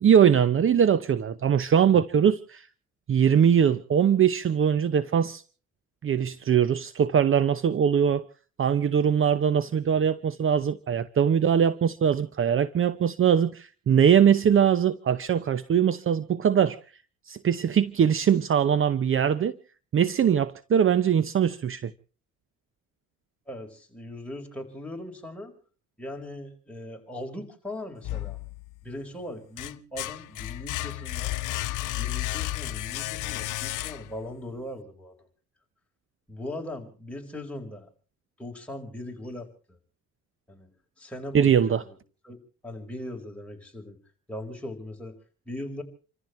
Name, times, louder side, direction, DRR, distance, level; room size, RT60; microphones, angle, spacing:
voice 1, 0.0-2.6 3.1-5.4 6.0-8.2 8.6-16.8 17.3-19.5 19.9-21.9 41.3-41.8, right 8 dB, 45° right, 0.8 m, -22 dB
voice 2, 23.5-25.5 26.0-28.4 28.8-31.3 31.9-35.2 36.3-37.9 38.4-39.8 40.5-40.7 41.0-42.0 42.2-44.0 44.3-45.2 45.5-45.8, left 1 dB, 5° left, 4.8 m, -39 dB
sound 1, 28.0-28.9 29.3-34.3, left 16 dB, 85° left, 0.8 m, -32 dB
29.0 x 14.5 x 3.2 m
cardioid pair, 90°, 30 cm